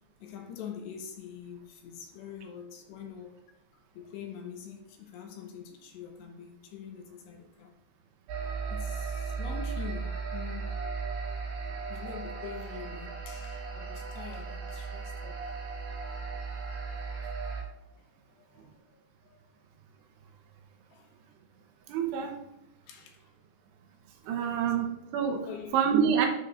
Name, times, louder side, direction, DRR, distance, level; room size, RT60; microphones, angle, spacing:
voice 1, 0.2-7.7 8.7-10.8 11.8-15.4 18.3-18.8 19.2-19.4 20.9-21.2 22.9-23.3 25.5-25.7, left 7 dB, 75° left, 3.1 m, -45 dB
sound 1, 8.3-17.6, right 4 dB, 60° right, 5.0 m, -36 dB
voice 2, 21.9-22.4 24.2-25.5 25.7-26.3, right 7 dB, 80° right, 2.8 m, -27 dB
12.0 x 6.2 x 2.5 m
omnidirectional pair, 5.3 m